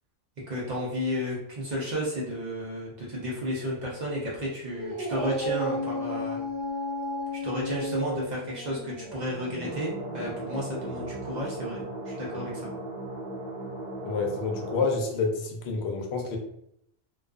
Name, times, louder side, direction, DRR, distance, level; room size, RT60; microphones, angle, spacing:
voice 1, 0.5-6.4 7.4-12.7, equal, 50° right, -4 dB, 0.5 m, -32 dB
Dog, 4.7-11.3, left 1 dB, 15° right, 0.9 m, -34 dB
sound 1, 9.6-14.8, right 1 dB, 75° right, 1.1 m, -37 dB
voice 2, 14.0-16.4, left 4 dB, 65° left, 2 dB, 0.8 m, -28 dB
2.3 x 2.3 x 2.3 m, 0.75 s
omnidirectional pair, 1.2 m